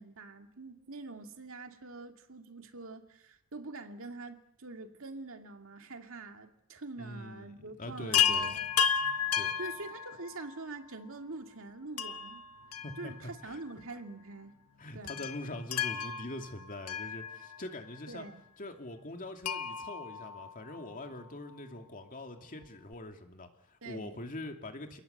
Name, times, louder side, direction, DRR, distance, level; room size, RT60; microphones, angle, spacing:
voice 1, 0.0-8.7 9.6-12.4 13.0-14.5 14.9-15.2 18.1-18.4 23.8-24.1, right 3 dB, 65° right, 5 dB, 2.5 m, -45 dB
voice 2, 7.0-7.5 7.8-8.5 9.4-9.5 12.8-13.6 14.8-18.2 18.6-25.0, left 1 dB, 40° left, 5 dB, 2.6 m, -43 dB
Chime, 8.1-10.6 12.0-13.5 13.8-13.9 15.1-17.8 19.4-21.1 22.6-22.7 22.9-23.0, left 7 dB, 75° left, 1.3 m, -33 dB
29.0 x 18.5 x 8.0 m, 0.81 s
head